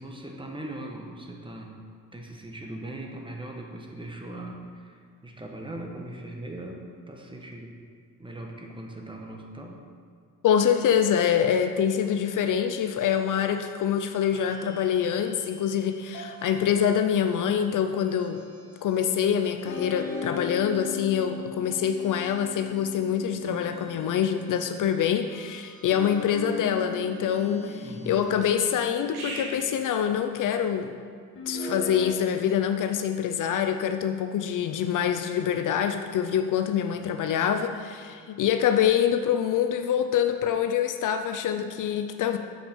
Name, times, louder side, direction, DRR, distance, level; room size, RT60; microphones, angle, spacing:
voice 1, 0.0-1.7 2.1-7.8 8.2-9.8 27.8-28.2, right 1 dB, 15° right, 1 dB, 1.3 m, -40 dB
voice 2, 10.4-18.4 18.8-31.0 31.5-42.4, left 8 dB, 60° left, 7 dB, 0.6 m, -25 dB
sound 1, 12.9-29.6, right 2 dB, 75° right, 1.8 m, -48 dB
sound 2, 19.6-24.2 25.9-30.0 31.4-32.1, left 4 dB, 35° left, 2.1 m, -38 dB
7.2 x 5.8 x 5.2 m, 2.1 s
supercardioid pair, 75°, 36 cm